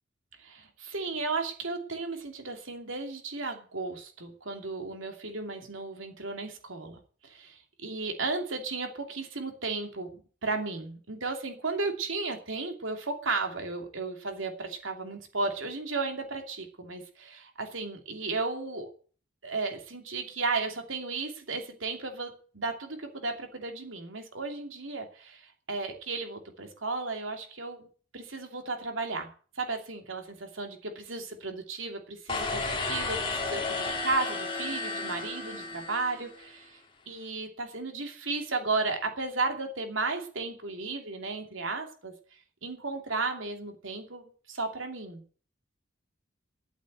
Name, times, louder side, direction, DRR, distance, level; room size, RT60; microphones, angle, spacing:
voice 1, 0.4-7.0 7.2-18.9 19.4-27.9 28.1-36.8 37.1-42.1 42.6-45.2, right 3 dB, 75° right, 4 dB, 2.8 m, -34 dB
sound 1, 32.3-36.5, left 3 dB, 25° left, 2.2 m, -33 dB
11.5 x 8.7 x 8.0 m, 0.42 s
head